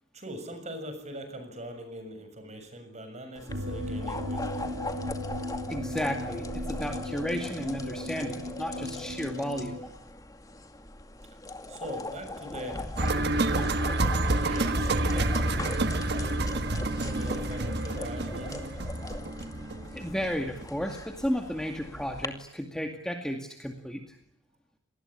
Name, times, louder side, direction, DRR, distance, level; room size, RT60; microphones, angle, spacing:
voice 1, 0.1-4.7 11.7-13.6 14.2-18.6, equal, 35° right, 8 dB, 6.8 m, -42 dB
sound 1, 3.3-22.3, left 2 dB, 20° left, 2.3 m, -41 dB
sound 2, 3.5-9.8, left 1 dB, 85° right, 3.5 m, -36 dB
voice 2, 5.7-9.9 19.9-24.2, equal, 5° left, 3 dB, 2.3 m, -33 dB
sound 3, 13.0-20.9 21.2-21.3, right 2 dB, 60° right, 1.5 m, -29 dB
28.0 x 20.0 x 10.0 m, 0.71 s
head